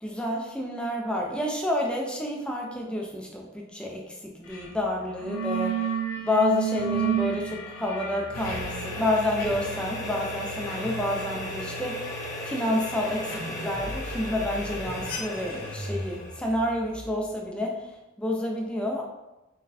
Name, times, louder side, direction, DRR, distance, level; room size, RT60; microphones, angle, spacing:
voice 1, 0.0-5.8 6.2-12.1 12.4-17.9 18.2-19.0, left 1 dB, 5° left, -1 dB, 0.5 m, -29 dB
sound 1, 4.5-4.7 5.0-11.7, right 9 dB, 85° left, 0.6 m, -32 dB
sound 2, 8.3-17.5, left 1 dB, 45° left, 0.7 m, -35 dB
4.0 x 3.7 x 2.7 m, 1.0 s
head